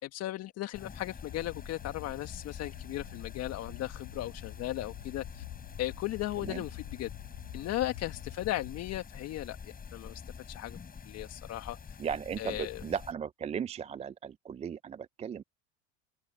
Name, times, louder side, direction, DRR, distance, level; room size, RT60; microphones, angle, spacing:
voice 1, 0.0-5.4 5.8-7.1 7.5-10.2 10.5-10.8 11.0-11.8 12.4-12.8, left 15 dB, 50° left, 1.8 m, -36 dB
sound 1, 0.7-13.1, left 6 dB, 25° left, 7.9 m, -47 dB
sound 2, 1.2-9.0, left 25 dB, 70° left, 8.0 m, -47 dB
voice 2, 12.0-15.4, right 7 dB, 20° right, 0.4 m, -36 dB
hypercardioid pair, 95°, 34 cm